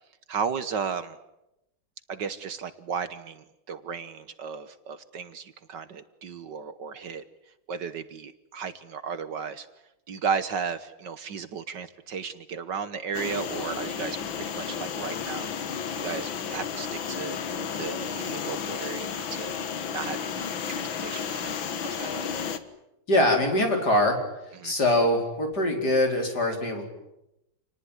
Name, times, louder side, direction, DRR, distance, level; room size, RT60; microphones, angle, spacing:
voice 1, 0.3-1.2 2.1-7.2 7.7-9.7 10.1-19.5 19.9-21.6 21.8-22.3 24.6-24.7, right 6 dB, 60° right, 12 dB, 1.7 m, -34 dB
sound 1, 13.1-22.6, left 7 dB, 70° left, 2.2 m, -32 dB
voice 2, 23.1-24.2 24.6-26.8, left 1 dB, 50° left, 3 dB, 5.2 m, -23 dB
28.5 x 19.5 x 9.7 m, 0.90 s
omnidirectional pair, 2.2 m